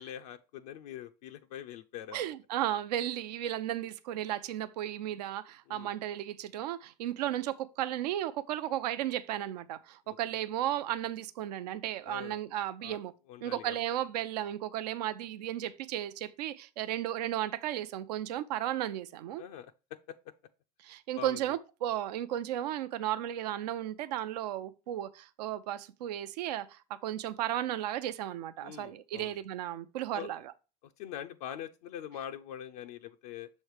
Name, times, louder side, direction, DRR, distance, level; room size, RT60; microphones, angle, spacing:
voice 1, 0.0-2.2 5.7-5.9 10.1-10.2 12.0-12.4 12.8-13.0 13.3-13.8 19.4-20.2 21.2-21.5 28.6-29.3 30.1-30.3 30.8-33.5, left 10 dB, 75° left, 0.5 m, -43 dB
voice 2, 2.1-13.1 13.4-19.4 20.8-30.4, right 12 dB, 85° right, 0.5 m, -34 dB
6.4 x 3.2 x 4.7 m
supercardioid pair, 95°, 20 cm